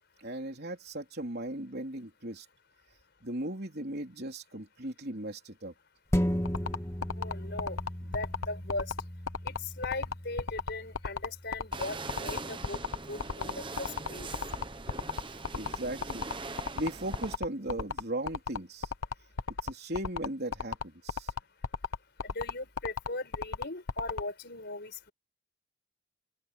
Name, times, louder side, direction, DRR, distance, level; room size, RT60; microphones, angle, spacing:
voice 1, 0.2-2.5 3.2-5.7 15.3-16.3 16.7-18.9 19.6-21.3, right 1 dB, 50° right, 3.8 m, -37 dB
sound 1, 6.1-14.9 15.4-15.5, equal, 15° left, 2.2 m, -37 dB
sound 2, 6.4-24.2, left 5 dB, 75° left, 1.0 m, -33 dB
voice 2, 7.1-7.8 8.1-8.9 9.4-12.8 13.1-14.3 22.2-25.1, left 2 dB, 50° left, 4.9 m, -38 dB
sound 3, 11.7-17.4, right 3 dB, 25° right, 1.1 m, -41 dB
open air
head